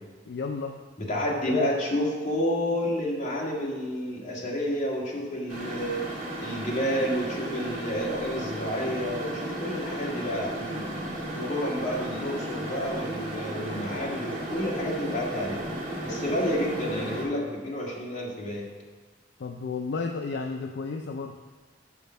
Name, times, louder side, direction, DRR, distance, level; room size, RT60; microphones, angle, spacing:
voice 1, 0.3-0.8 1.5-1.7 19.4-21.4, left 4 dB, 65° left, 4 dB, 0.5 m, -32 dB
voice 2, 1.0-15.6 16.0-18.7, equal, 40° left, -4 dB, 2.1 m, -30 dB
sound 1, 5.5-17.2, right 1 dB, 50° right, 2.3 m, -34 dB
7.2 x 5.1 x 6.7 m, 1.4 s
head